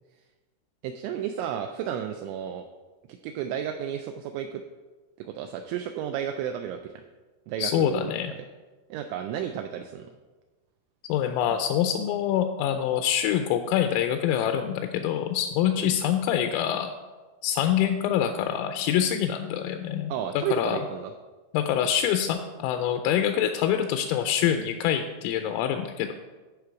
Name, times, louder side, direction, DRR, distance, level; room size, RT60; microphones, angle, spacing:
voice 1, 0.8-2.7 3.1-4.6 5.2-7.0 7.5-8.1 8.9-10.1 15.8-15.9 20.1-21.1, right 9 dB, 90° right, 6 dB, 2.6 m, -32 dB
voice 2, 7.6-8.3 11.1-16.9 17.4-20.8 21.5-26.1, left 10 dB, 85° left, 6 dB, 3.1 m, -25 dB
14.0 x 5.1 x 4.7 m, 1.3 s
omnidirectional pair, 5.9 m